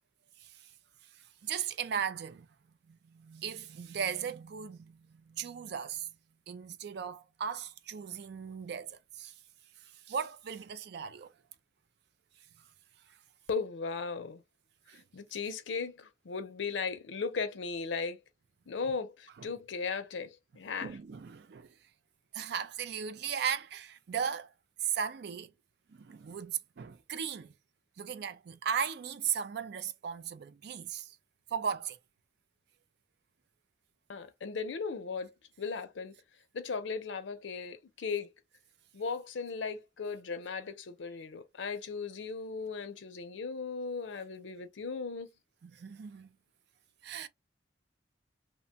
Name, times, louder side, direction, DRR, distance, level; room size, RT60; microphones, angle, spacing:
voice 1, 1.4-2.5 2.9-5.0 5.3-6.1 6.5-9.3 10.1-11.3 14.9-15.0 19.4-19.5 20.8-21.7 22.3-24.5 24.8-25.5 26.0-27.5 28.0-31.2 31.5-32.0 45.6-46.3 47.0-47.3, right 7 dB, 60° right, 0.4 m, -37 dB
voice 2, 13.5-14.4 14.9-18.2 18.7-21.0 34.1-36.1 36.5-38.3 38.9-45.3, left 5 dB, 85° left, 0.5 m, -37 dB
2.8 x 2.2 x 2.7 m
head